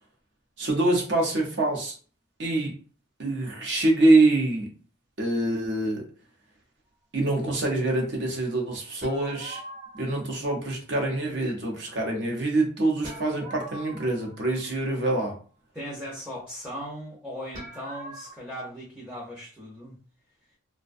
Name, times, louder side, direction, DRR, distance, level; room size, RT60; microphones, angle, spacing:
voice 1, 0.6-1.9 2.4-2.7 3.2-4.7 5.2-6.0 7.1-9.6 9.9-15.4, right 2 dB, 55° right, 0 dB, 0.7 m, -25 dB
sound 1, 9.0-10.3 13.0-14.9 17.5-18.3, right 1 dB, 40° right, 1.1 m, -42 dB
voice 2, 15.7-20.0, equal, 5° right, -5 dB, 0.5 m, -38 dB
2.5 x 2.2 x 2.4 m, 0.39 s
head